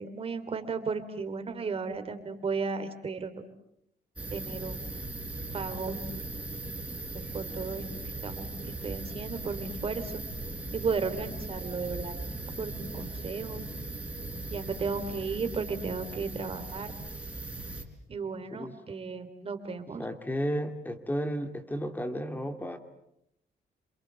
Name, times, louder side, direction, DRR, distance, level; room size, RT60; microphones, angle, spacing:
voice 1, 0.0-3.3 4.3-4.9 5.5-6.0 7.1-10.2 10.7-12.3 12.6-13.7 14.5-16.9 18.1-20.1, right 5 dB, 35° right, 8 dB, 3.0 m, -34 dB
sound 1, 4.2-17.8, right 2 dB, 10° right, 4.0 m, -39 dB
voice 2, 20.0-22.8, equal, 10° left, 7 dB, 2.2 m, -33 dB
27.5 x 27.0 x 8.1 m, 0.79 s
wide cardioid pair, 180°, 17 cm